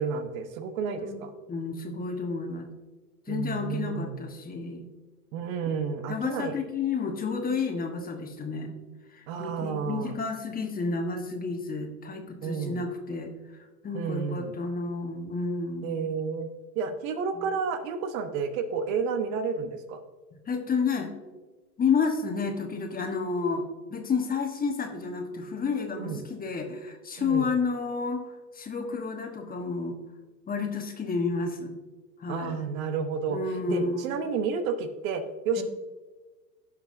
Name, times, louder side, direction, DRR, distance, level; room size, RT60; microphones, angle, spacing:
voice 1, 0.0-1.3 3.3-4.2 5.3-6.6 9.3-10.1 12.4-12.8 13.9-14.5 15.8-20.0 26.0-26.2 27.2-27.6 32.3-33.4 33.7-35.6, right 6 dB, 55° right, 9 dB, 1.0 m, -31 dB
voice 2, 1.5-2.7 3.3-4.9 6.1-8.7 9.1-13.3 13.8-16.1 20.5-21.1 21.8-23.7 23.9-29.9 30.5-31.7 32.2-32.7 33.3-34.1 35.6-35.7, left 4 dB, 20° left, 4 dB, 1.2 m, -30 dB
17.0 x 5.8 x 2.6 m, 1.3 s
hypercardioid pair, 100°, 48 cm